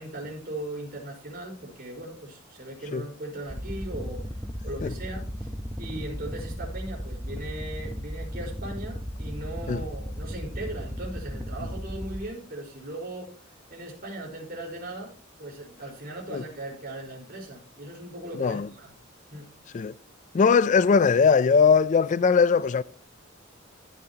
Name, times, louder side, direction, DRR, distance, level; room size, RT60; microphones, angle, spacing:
voice 1, 0.0-4.3 4.6-5.5 5.8-13.3 13.7-15.1 15.4-18.9 19.3-19.5, right 1 dB, 50° right, 4.6 m, -38 dB
sound 1, 3.5-12.2, equal, ahead, 0.8 m, -35 dB
voice 2, 20.3-22.8, left 5 dB, 40° left, 0.4 m, -20 dB
16.5 x 7.5 x 2.9 m
head